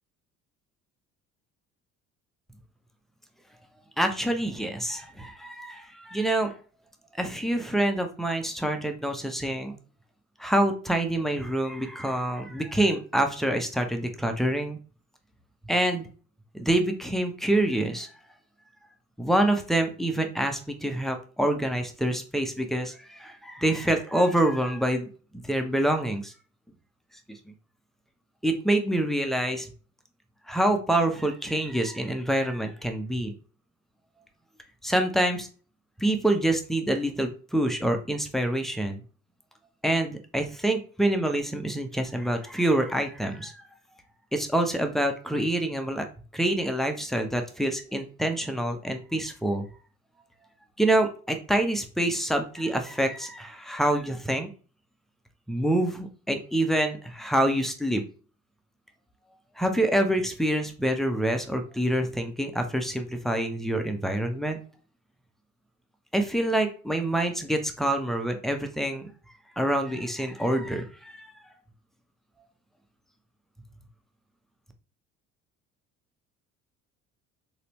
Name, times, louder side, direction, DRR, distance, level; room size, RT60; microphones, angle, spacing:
voice 1, 4.0-6.5 7.2-9.8 10.4-14.8 15.7-16.1 16.5-18.1 19.2-25.1 25.3-26.3 27.3-27.4 28.4-29.7 30.5-33.3 34.8-35.5 36.0-39.0 39.8-43.7 44.3-46.1 46.3-49.7 50.8-54.5 55.5-58.0 59.6-64.6 66.1-69.1 69.6-71.3, right 1 dB, ahead, 4 dB, 0.4 m, -26 dB
3.8 x 2.0 x 2.9 m, 0.39 s
figure-of-eight pair, 55°, 40 cm